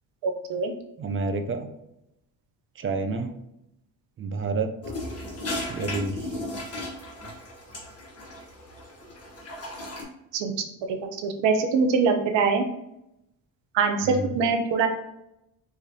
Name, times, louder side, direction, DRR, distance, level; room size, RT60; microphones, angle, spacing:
voice 1, 0.2-0.7 10.3-10.5 10.9-12.6 13.7-14.9, right 5 dB, 85° right, 5 dB, 0.7 m, -23 dB
voice 2, 1.0-1.7 2.8-3.3 4.2-4.7 5.7-6.4 14.0-14.4, right 3 dB, 30° right, 6 dB, 0.4 m, -29 dB
sound 1, 4.8-10.0, left 1 dB, 35° left, 1.3 m, -36 dB
4.9 x 2.5 x 2.7 m, 0.85 s
cardioid pair, 115°, 43 cm